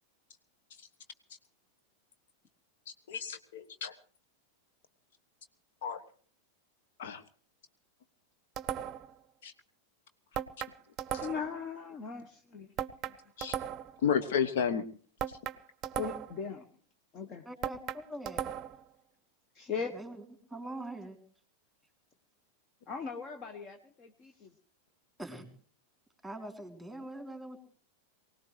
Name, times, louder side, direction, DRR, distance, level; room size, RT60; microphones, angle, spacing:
voice 1, 2.9-3.9 5.8-6.0 7.0-7.2 9.4-9.5 11.1-11.3 13.4-13.6 14.0-14.8, left 7 dB, 55° left, 10 dB, 1.1 m, -32 dB
sound 1, 8.6-9.2 10.3-11.6 12.8-14.0 15.2-16.4 17.6-18.8, right 10 dB, 30° right, 0.7 m, -37 dB
voice 2, 11.2-12.7 13.1-13.2 16.0-16.7 17.1-17.4 19.5-20.0 22.9-24.5, left 6 dB, 30° left, 7 dB, 1.2 m, -39 dB
voice 3, 17.5-18.4 19.9-20.2 20.5-21.2 25.2-25.5 26.2-27.6, right 1 dB, ahead, 6 dB, 3.0 m, -43 dB
24.0 x 18.0 x 3.2 m, 0.43 s
figure-of-eight pair, 90°, 0 cm